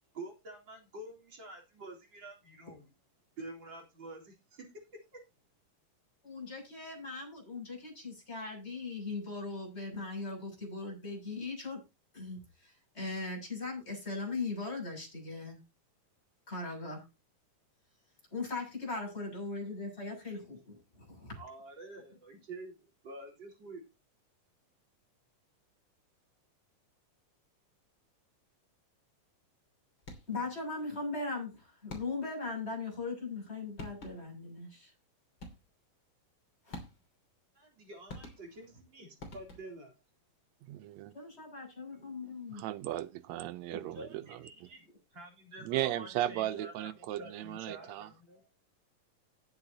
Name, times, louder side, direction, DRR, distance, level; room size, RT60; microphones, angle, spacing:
voice 1, 0.1-2.9 3.4-4.7 5.1-5.2 21.4-23.9 37.5-39.9 43.7-48.5, right 2 dB, 35° right, 4.3 m, -48 dB
voice 2, 6.2-11.8 12.1-15.6 16.5-17.0 18.3-21.4 30.3-34.9 36.7-36.8 41.1-42.6, left 3 dB, 15° left, 7.6 m, -39 dB
sound 1, 30.0-30.5 31.9-32.4 33.4-33.5 33.8-34.4 35.4-35.9 36.7-37.3 38.1-38.8 39.2-39.9, left 1 dB, 35° left, 3.3 m, -48 dB
voice 3, 40.7-41.1 42.5-44.2 45.6-48.1, right 13 dB, 75° right, 1.7 m, -36 dB
19.0 x 8.1 x 2.9 m
omnidirectional pair, 3.8 m